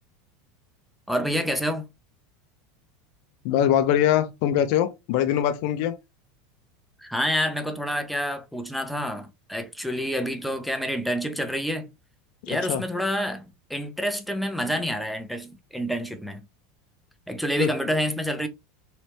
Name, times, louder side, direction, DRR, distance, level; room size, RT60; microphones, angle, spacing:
voice 1, 1.1-1.9 7.0-11.9 12.5-16.4 17.3-18.5, equal, ahead, 0.6 m, -28 dB
voice 2, 3.4-6.0 12.4-12.8 17.6-17.7, left 10 dB, 60° left, 0.5 m, -23 dB
3.1 x 2.8 x 3.1 m
supercardioid pair, 145°, 0 cm